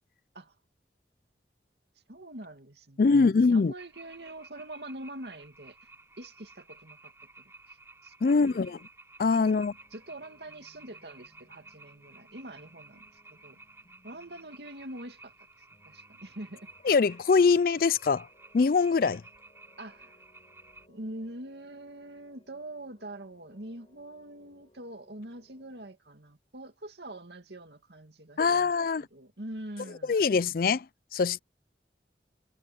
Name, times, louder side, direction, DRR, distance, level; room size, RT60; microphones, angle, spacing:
voice 1, 2.1-5.8 6.2-7.1 7.4-7.5 8.0-8.7 9.4-9.6 9.9-13.6 14.0-15.3 15.9-16.7 19.8-20.2 20.9-30.2, right 1 dB, 75° right, 2.4 m, -44 dB
voice 2, 3.0-3.7 8.2-8.8 9.2-9.7 16.9-18.3 18.5-19.2 28.4-29.1 30.1-30.8 31.1-31.4, left 4 dB, 55° left, 0.4 m, -23 dB
sound 1, 3.8-20.9, right 3 dB, 15° right, 6.5 m, -54 dB
sound 2, 9.5-25.9, left 1 dB, 30° left, 5.2 m, -64 dB
head